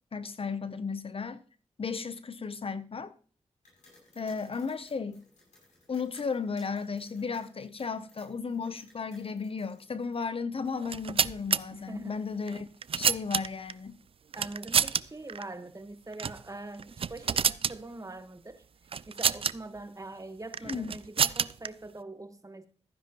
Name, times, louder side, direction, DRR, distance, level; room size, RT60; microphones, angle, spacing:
voice 1, 0.1-1.4 1.8-3.1 4.2-5.2 5.9-12.7 12.9-13.9 20.6-20.9, left 5 dB, 50° left, 0.7 m, -34 dB
sound 1, 3.6-10.3, left 2 dB, 90° left, 6.5 m, -60 dB
sound 2, 10.8-11.6 12.5-13.7 14.3-15.0 15.3-15.4 16.1-16.4 16.8-17.8 18.9-19.5 20.5-21.7, right 6 dB, 50° right, 0.4 m, -28 dB
voice 2, 11.7-12.2 14.3-18.6 19.1-22.7, right 2 dB, 25° right, 1.3 m, -43 dB
14.0 x 10.0 x 3.0 m
cardioid pair, 55°, 12 cm